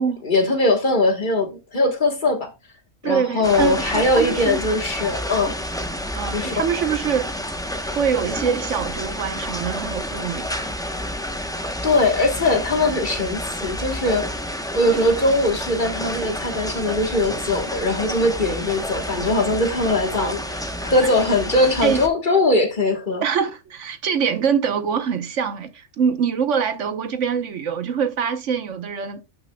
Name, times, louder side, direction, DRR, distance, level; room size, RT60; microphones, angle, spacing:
voice 1, 0.0-2.5 3.0-5.6 6.3-6.6 11.8-14.3 14.7-23.2, left 2 dB, 40° left, 1.4 m, -21 dB
voice 2, 3.0-4.6 6.1-7.3 7.9-10.6 20.1-20.3 21.0-21.1 21.8-22.0 23.2-29.2, right 7 dB, 65° right, 1.2 m, -24 dB
sound 1, 3.4-22.1, equal, 5° left, 0.7 m, -30 dB
12.0 x 6.0 x 2.2 m
omnidirectional pair, 1.4 m